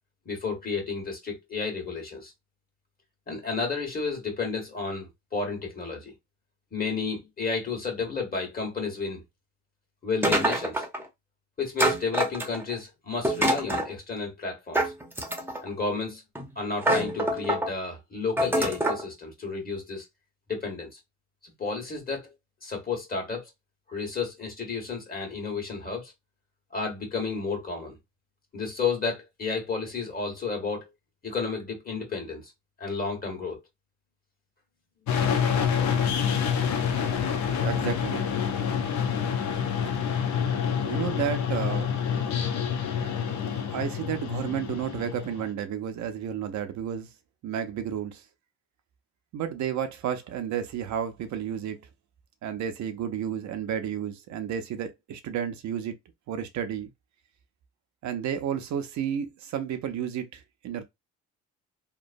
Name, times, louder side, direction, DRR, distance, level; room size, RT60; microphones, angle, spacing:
voice 1, 0.2-2.3 3.3-6.1 6.7-9.2 10.0-10.8 11.6-14.9 15.6-16.2 16.5-20.0 20.5-21.0 21.4-22.3 22.6-23.4 23.9-26.1 26.7-27.9 28.5-30.9 31.2-32.5 32.8-33.6, left 4 dB, 30° left, 1.4 m, -32 dB
sound 1, 10.2-11.0 11.8-12.7 13.2-13.9 14.7-15.7 16.3-16.5 16.8-17.7 18.4-19.0, right 1 dB, 5° right, 0.7 m, -26 dB
sound 2, 35.1-45.5, left 7 dB, 65° left, 0.7 m, -27 dB
voice 2, 37.6-38.3 40.8-41.9 43.4-47.1 47.4-48.2 49.3-51.8 52.4-56.0 56.3-56.9 58.0-60.8, right 9 dB, 70° right, 0.6 m, -32 dB
3.0 x 2.1 x 2.5 m
cardioid pair, 90°, 30 cm